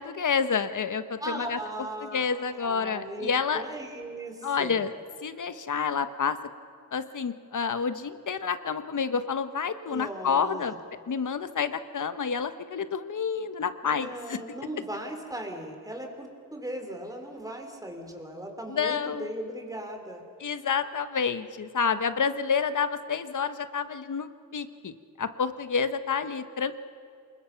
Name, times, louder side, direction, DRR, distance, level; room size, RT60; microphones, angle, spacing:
voice 1, 0.0-1.6 2.1-3.6 4.4-4.9 5.2-6.4 6.9-10.7 11.1-14.4 18.7-19.3 20.4-26.9, left 6 dB, 65° left, 11 dB, 1.2 m, -29 dB
voice 2, 1.2-4.8 9.9-10.7 13.8-20.2, right 1 dB, 10° right, 3 dB, 3.5 m, -38 dB
28.5 x 21.0 x 5.9 m, 2.5 s
wide cardioid pair, 110°, 33 cm